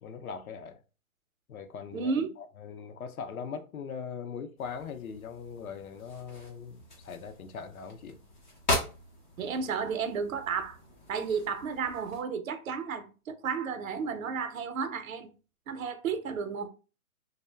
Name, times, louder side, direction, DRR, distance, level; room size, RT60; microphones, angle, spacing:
voice 1, 0.0-0.8 1.5-8.2, left 6 dB, 80° left, 0.6 m, -41 dB
voice 2, 1.9-2.3 9.4-10.8 11.1-15.3 15.7-16.7, right 6 dB, 70° right, 0.6 m, -32 dB
sound 1, 4.6-12.2, left 1 dB, 35° left, 0.7 m, -39 dB
2.3 x 2.1 x 3.3 m
hypercardioid pair, 180°, 42 cm